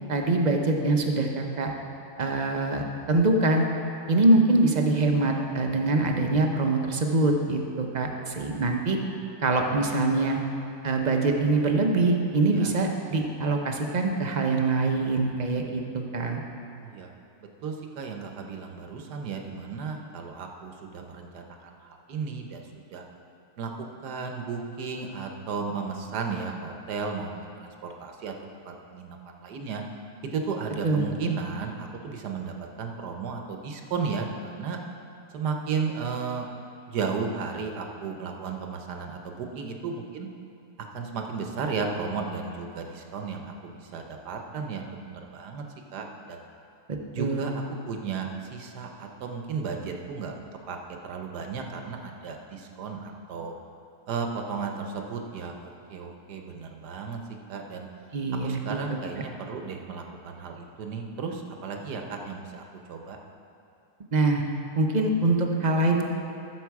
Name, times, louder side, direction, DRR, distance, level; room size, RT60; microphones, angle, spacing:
voice 1, 0.1-1.7 2.2-3.7 4.1-9.0 9.4-10.4 10.8-16.4 30.8-31.1 46.9-47.5 58.1-58.8 64.1-64.4 64.8-66.0, right 2 dB, 40° right, 3 dB, 0.7 m, -24 dB
voice 2, 6.0-6.5 12.5-12.7 16.8-17.1 17.6-22.6 22.9-23.0 23.6-28.3 28.6-29.8 30.3-34.8 35.3-36.5 36.9-40.3 40.9-45.6 45.9-46.4 47.1-50.3 50.7-50.8 51.0-53.5 54.1-57.2 57.5-57.9 58.4-63.2, right 5 dB, 80° right, 3 dB, 1.5 m, -34 dB
14.0 x 7.0 x 4.7 m, 2.6 s
omnidirectional pair, 1.7 m